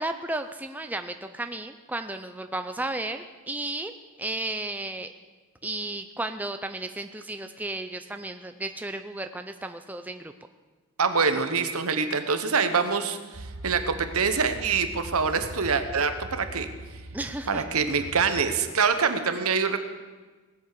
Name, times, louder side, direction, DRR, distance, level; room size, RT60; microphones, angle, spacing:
voice 1, 0.0-3.9 4.2-5.1 5.6-10.3 17.1-17.6, right 2 dB, 5° right, 8 dB, 0.4 m, -33 dB
voice 2, 11.0-16.7 17.5-19.8, right 5 dB, 75° right, 8 dB, 1.1 m, -25 dB
sound 1, 13.3-18.6, right 2 dB, 60° right, 0.8 m, -41 dB
18.5 x 8.2 x 6.8 m, 1.3 s
head